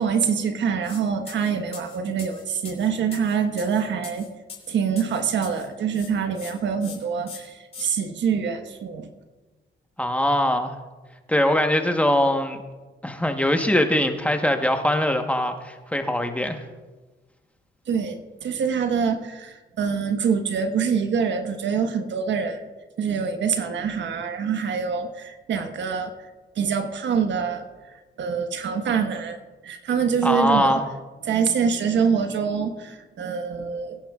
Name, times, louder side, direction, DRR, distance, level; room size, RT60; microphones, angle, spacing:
voice 1, 0.0-4.3 4.7-9.1 17.9-22.6 23.0-26.1 26.5-27.6 28.2-29.4 29.6-30.8 31.2-34.0, right 6 dB, 65° right, 7 dB, 1.2 m, -25 dB
sound 1, 0.8-1.0 1.3-5.7 5.9-6.5 6.8-7.0 7.3-7.9, left 5 dB, 30° left, 2.9 m, -41 dB
voice 2, 10.0-10.8 11.3-12.6 13.0-16.6 30.2-30.8, left 1 dB, 5° left, 5 dB, 1.1 m, -22 dB
22.0 x 10.0 x 2.4 m, 1.3 s
cardioid pair, 90°, 20 cm